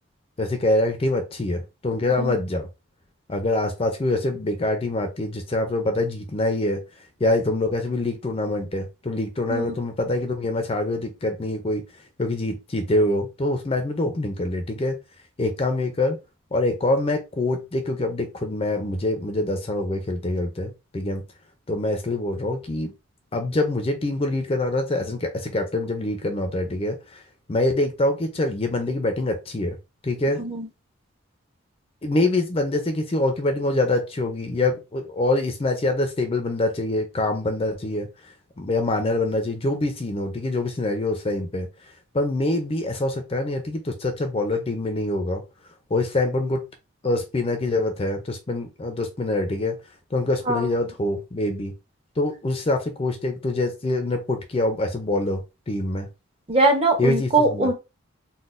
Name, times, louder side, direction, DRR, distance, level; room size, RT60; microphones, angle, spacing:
voice 1, 0.4-2.7 3.3-6.8 7.2-11.8 12.2-15.0 15.4-16.2 16.5-21.2 21.7-22.9 23.3-27.2 27.5-29.8 30.0-30.4 32.0-38.1 38.6-41.7 42.1-45.4 45.9-46.6 47.0-49.8 50.1-51.7 52.2-56.1 57.0-57.7, left 2 dB, 30° left, 5 dB, 0.5 m, -25 dB
voice 2, 56.5-57.7, right 2 dB, 30° right, 3 dB, 0.7 m, -21 dB
3.9 x 2.2 x 2.5 m, 0.26 s
head